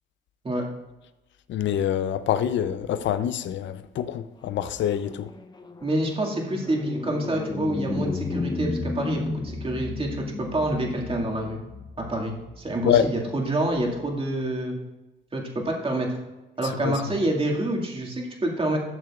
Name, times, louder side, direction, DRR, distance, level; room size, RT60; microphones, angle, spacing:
voice 1, 1.5-5.3 12.8-13.1 16.8-16.9, left 10 dB, 70° left, 0.6 m, -25 dB
sound 1, 4.5-14.0, left 3 dB, 20° left, 0.8 m, -34 dB
voice 2, 5.8-11.6 12.0-14.8 15.3-16.2 16.6-18.8, right 1 dB, 25° right, 2.1 m, -27 dB
12.5 x 6.7 x 2.4 m
cardioid pair, 90°, 20 cm